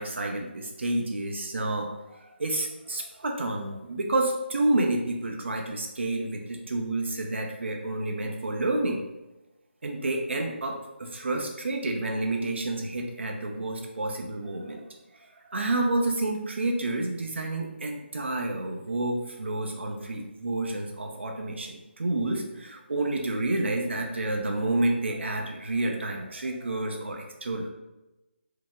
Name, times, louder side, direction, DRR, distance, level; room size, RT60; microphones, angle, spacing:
voice 1, 0.0-9.0 9.8-14.8 15.1-27.7, right 2 dB, 75° right, 2 dB, 0.6 m, -29 dB
4.6 x 2.0 x 3.5 m, 1.0 s
figure-of-eight pair, 175°, 6 cm